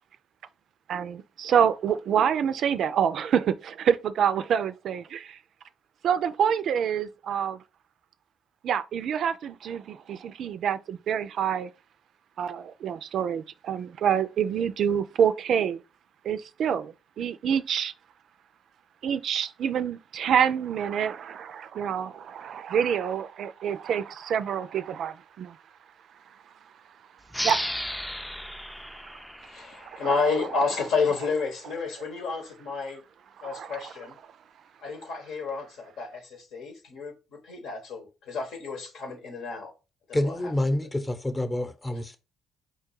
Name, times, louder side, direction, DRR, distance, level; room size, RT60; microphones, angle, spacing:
voice 1, 0.9-5.4 6.0-7.6 8.6-11.7 12.4-15.8 16.2-17.9 19.0-25.6 27.4-27.7 28.8-29.1 29.8-30.0 33.4-33.9, right 8 dB, 65° right, 0.3 m, -27 dB
sound 1, 27.3-30.6, equal, 5° left, 0.4 m, -34 dB
voice 2, 29.4-33.0 33.4-34.1 34.8-39.7 40.1-40.5, left 4 dB, 75° left, 1.2 m, -30 dB
voice 3, 40.1-42.2, left 1 dB, 20° left, 0.8 m, -27 dB
4.4 x 2.3 x 4.6 m
supercardioid pair, 55°, 0 cm